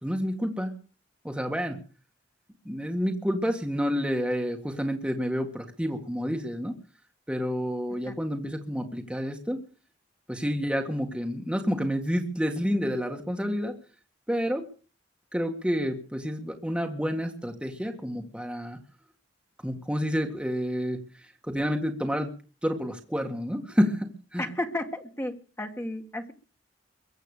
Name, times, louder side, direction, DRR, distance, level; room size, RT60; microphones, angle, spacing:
voice 1, 0.0-0.7 1.2-1.8 2.7-6.8 7.3-9.6 10.3-13.7 14.3-14.6 15.3-18.8 19.6-22.3 22.6-24.4, equal, 5° right, 2 dB, 1.8 m, -29 dB
voice 2, 24.4-26.3, left 1 dB, 15° left, 5 dB, 1.8 m, -33 dB
23.0 x 8.2 x 6.8 m, 0.38 s
head